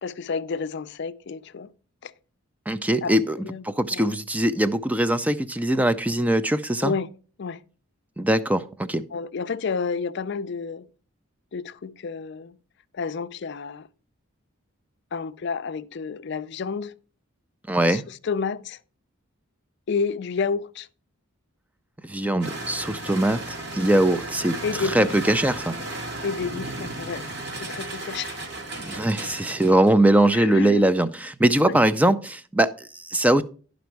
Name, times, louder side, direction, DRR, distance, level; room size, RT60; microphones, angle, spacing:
voice 1, 0.0-1.7 2.0-2.1 3.0-3.6 3.9-4.1 6.8-7.1 7.4-7.6 9.1-10.9 11.5-12.6 12.9-13.9 15.1-16.9 17.9-18.8 19.9-20.9 24.6-25.4 26.2-27.3 27.5-28.4 30.3-30.9 31.7-31.8, left 5 dB, 55° left, 0.4 m, -30 dB
voice 2, 2.7-3.4 3.6-6.9 8.2-9.0 17.7-18.0 22.0-25.7 28.8-33.4, right 1 dB, 5° right, 0.4 m, -21 dB
sound 1, 22.4-30.0, right 2 dB, 55° right, 1.7 m, -35 dB
11.5 x 5.1 x 4.6 m
head